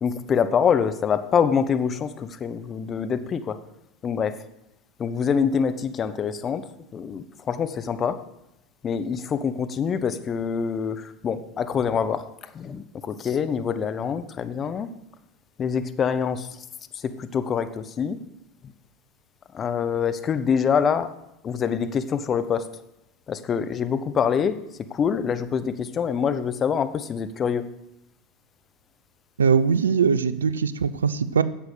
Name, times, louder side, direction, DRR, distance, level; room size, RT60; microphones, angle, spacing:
voice 1, 0.0-3.6 4.0-4.4 5.0-6.7 6.9-8.2 8.8-12.3 12.5-14.9 15.6-16.5 16.9-18.2 19.5-21.1 21.4-22.7 23.3-24.6 24.9-27.6, left 7 dB, 35° left, 12 dB, 0.9 m, -25 dB
voice 2, 29.4-31.4, right 6 dB, 85° right, 16 dB, 0.6 m, -21 dB
10.5 x 7.3 x 6.7 m, 0.88 s
hypercardioid pair, 85°, 0 cm